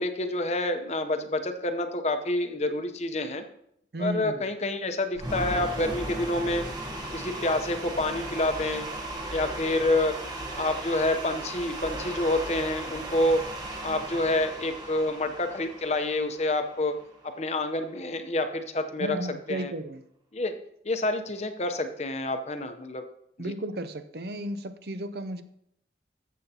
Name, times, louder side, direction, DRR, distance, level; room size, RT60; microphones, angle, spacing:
voice 1, 0.0-3.4 4.0-6.7 7.1-8.8 9.3-10.2 10.6-13.4 13.8-17.0 17.2-19.2 19.5-19.7 20.3-20.5 20.8-23.0 23.4-23.5, left 1 dB, 35° left, 7 dB, 0.7 m, -28 dB
voice 2, 3.9-4.4 19.0-20.0 23.4-25.4, right 1 dB, 60° right, 10 dB, 0.6 m, -34 dB
sound 1, 5.2-17.3, right 1 dB, 20° right, 1.1 m, -37 dB
13.5 x 7.3 x 2.8 m, 0.72 s
head